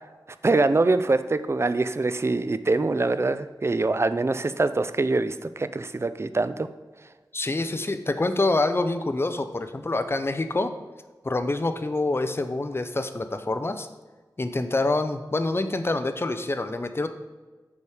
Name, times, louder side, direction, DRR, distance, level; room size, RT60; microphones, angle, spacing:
voice 1, 0.4-6.7, right 3 dB, 35° right, 12 dB, 0.4 m, -24 dB
voice 2, 7.3-10.7 11.2-13.9 14.4-17.1, left 2 dB, 30° left, 9 dB, 0.5 m, -26 dB
7.0 x 4.8 x 5.0 m, 1.3 s
wide cardioid pair, 80°, 8 cm